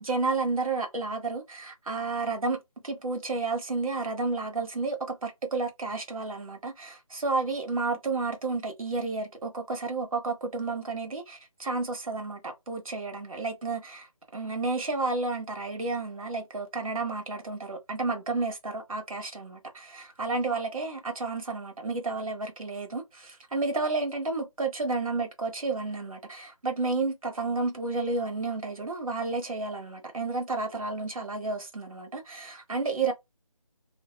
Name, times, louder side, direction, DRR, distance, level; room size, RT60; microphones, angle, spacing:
voice 1, 0.0-2.6 2.8-14.1 14.3-33.1, right 3 dB, 70° right, 1.0 m, -31 dB
2.5 x 2.1 x 2.3 m
figure-of-eight pair, 160°, 18 cm